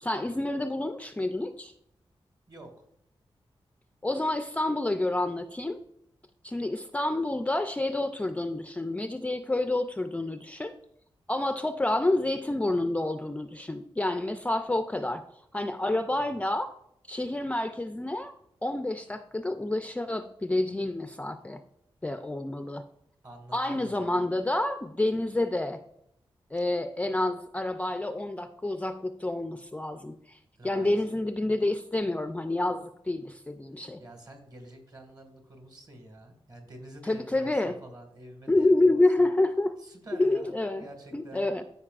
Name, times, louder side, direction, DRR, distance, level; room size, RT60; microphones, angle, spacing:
voice 1, 0.0-1.7 4.0-5.8 6.4-10.7 11.3-15.2 15.5-16.7 17.1-18.3 18.6-21.6 22.0-22.8 23.5-25.8 26.5-30.4 30.6-34.0 37.0-37.7 38.5-39.7 40.2-40.9 41.1-41.6, left 2 dB, 15° left, 8 dB, 0.4 m, -28 dB
voice 2, 2.5-2.8 15.9-16.4 23.2-24.0 30.6-31.0 34.0-39.3 39.8-41.5, right 1 dB, 40° right, 4 dB, 1.8 m, -48 dB
13.0 x 5.3 x 2.4 m, 0.75 s
wide cardioid pair, 140°, 10 cm